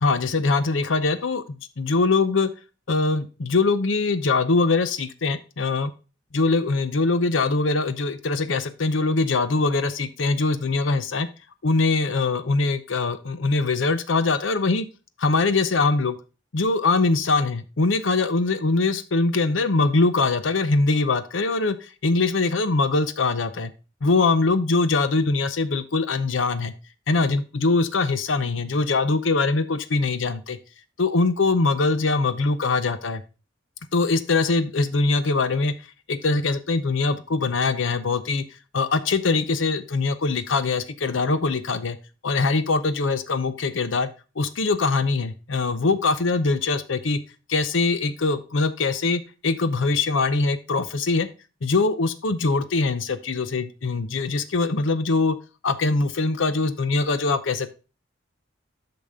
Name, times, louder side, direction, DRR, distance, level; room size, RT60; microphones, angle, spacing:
voice 1, 0.0-2.5 2.9-5.9 6.3-11.3 11.6-14.9 15.2-16.2 16.5-23.7 24.0-26.7 27.1-30.6 31.0-33.2 33.9-35.7 36.1-38.4 38.7-42.0 42.2-44.1 44.4-47.2 47.5-51.3 51.6-55.4 55.6-57.7, left 3 dB, 75° left, 12 dB, 0.7 m, -22 dB
8.6 x 6.0 x 3.5 m, 0.32 s
head